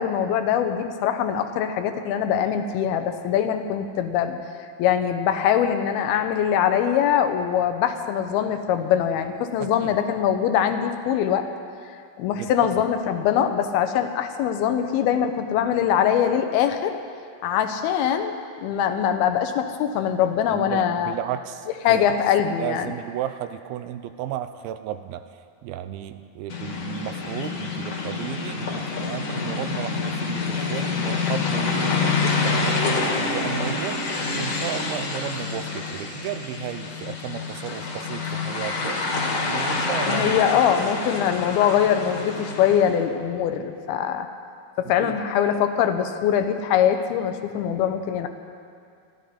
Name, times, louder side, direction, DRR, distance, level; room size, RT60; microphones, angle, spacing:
voice 1, 0.0-4.4 4.8-11.5 12.2-16.9 17.4-21.1 21.9-22.9 40.1-44.3 44.8-48.3, left 9 dB, 85° left, 8 dB, 2.8 m, -22 dB
voice 2, 9.6-9.9 12.4-12.8 20.5-22.1 22.6-25.2 25.6-39.0 39.5-40.4 44.8-45.2, right 11 dB, 90° right, 10 dB, 2.5 m, -34 dB
sound 1, 26.5-42.9, left 4 dB, 50° left, 2.3 m, -27 dB
27.5 x 12.0 x 4.3 m, 2.4 s
omnidirectional pair, 4.4 m